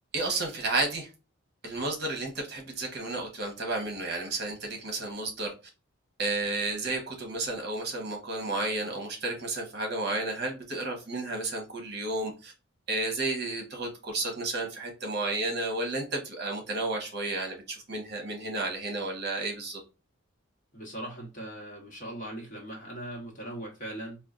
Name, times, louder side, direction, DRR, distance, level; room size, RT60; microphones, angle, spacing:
voice 1, 0.1-1.1 1.6-5.5 6.2-12.5 12.9-19.8, right 2 dB, 50° right, 1.0 m, -32 dB
voice 2, 20.7-24.2, right 1 dB, 40° left, 1.1 m, -39 dB
4.3 x 2.3 x 2.4 m
head